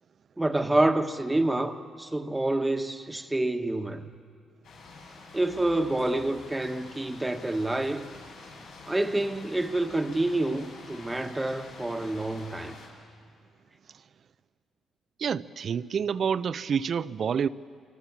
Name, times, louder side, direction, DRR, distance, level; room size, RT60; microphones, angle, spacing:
voice 1, 0.4-4.1 5.3-8.1 8.9-12.8, right 2 dB, 10° right, 1.3 m, -27 dB
sound 1, 4.6-12.9, left 3 dB, 85° left, 7.5 m, -47 dB
voice 2, 15.2-17.5, right 7 dB, 55° right, 0.6 m, -28 dB
26.0 x 24.5 x 7.4 m
cardioid pair, 90°, 0 cm